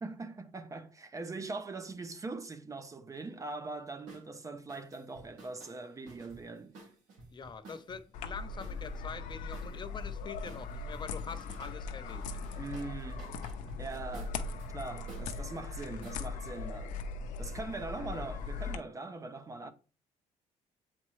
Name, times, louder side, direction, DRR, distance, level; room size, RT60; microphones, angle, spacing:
voice 1, 0.0-6.8 12.5-13.3 13.8-17.0 17.4-19.7, right 3 dB, 25° right, 0.6 m, -42 dB
sound 1, 4.1-4.3 4.7-8.0 8.6-10.1 10.4-11.8 12.1-16.2, right 2 dB, 85° right, 2.1 m, -53 dB
voice 2, 7.3-12.2, left 5 dB, 35° left, 0.6 m, -44 dB
sound 2, 8.1-18.8, left 4 dB, 90° left, 0.6 m, -40 dB
7.3 x 4.2 x 3.1 m
cardioid pair, 105°, 13 cm